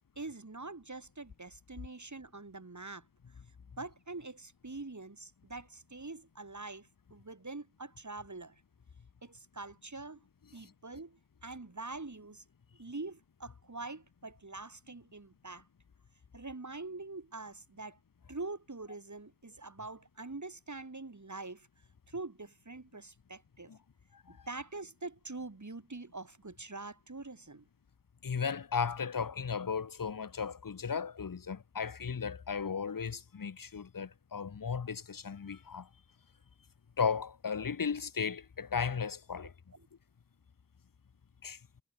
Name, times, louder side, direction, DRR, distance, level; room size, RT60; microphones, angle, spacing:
voice 1, 0.0-3.0 3.8-8.5 9.2-10.2 10.5-12.4 12.8-15.6 16.3-18.0 18.3-21.7 22.1-23.7 24.3-27.7 39.7-39.9, right 3 dB, 60° right, 3.4 m, -44 dB
voice 2, 28.2-35.9 37.0-39.5 41.4-41.6, left 6 dB, 85° left, 0.9 m, -35 dB
wide cardioid pair, 45°, 32 cm